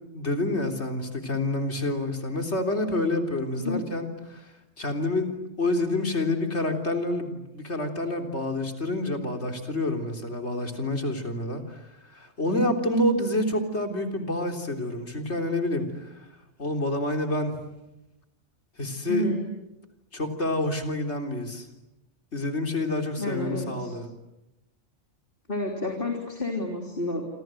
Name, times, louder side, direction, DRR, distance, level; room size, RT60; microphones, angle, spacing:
voice 1, 0.1-4.5 4.8-11.8 12.1-16.1 16.6-17.6 18.8-19.2 20.1-21.7 22.3-24.1, left 1 dB, 60° left, 5 dB, 3.9 m, -28 dB
voice 2, 19.1-19.4 23.2-23.9 25.5-27.3, left 1 dB, 45° left, 2 dB, 3.7 m, -30 dB
28.0 x 27.0 x 7.8 m, 0.95 s
omnidirectional pair, 1.3 m